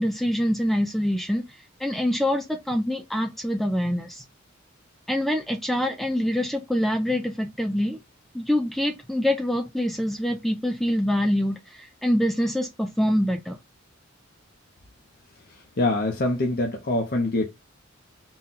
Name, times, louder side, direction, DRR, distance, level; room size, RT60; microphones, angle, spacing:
voice 1, 0.0-1.4 1.8-4.2 5.1-8.0 8.3-13.6, equal, ahead, 0.4 m, -25 dB
voice 2, 15.8-17.4, left 2 dB, 50° left, 0.7 m, -24 dB
4.2 x 2.2 x 3.8 m
head